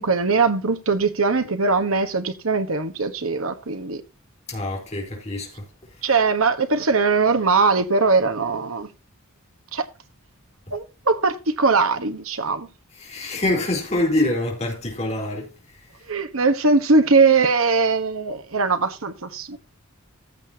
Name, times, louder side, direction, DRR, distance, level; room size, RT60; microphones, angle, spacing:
voice 1, 0.0-4.0 6.0-8.9 9.7-9.9 10.7-12.7 16.1-19.6, right 4 dB, 75° right, 1.3 m, -20 dB
voice 2, 4.5-5.7 10.7-10.8 13.0-15.5, left 1 dB, 30° left, 4.1 m, -25 dB
15.0 x 6.8 x 2.8 m
head